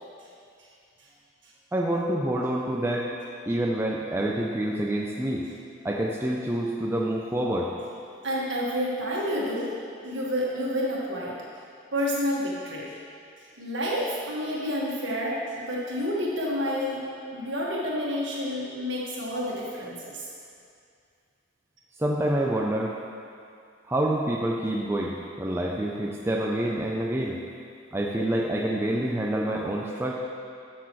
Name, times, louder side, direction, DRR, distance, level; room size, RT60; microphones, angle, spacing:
voice 1, 1.7-3.1 3.5-5.5 5.8-7.7 22.0-22.9 23.9-27.4 27.9-30.1, right 1 dB, 10° right, -2 dB, 0.4 m, -27 dB
voice 2, 8.2-9.7 10.0-11.3 11.9-12.9 13.4-17.0 17.3-20.3, equal, 70° right, -5 dB, 1.6 m, -29 dB
11.5 x 6.1 x 3.1 m, 2.4 s
head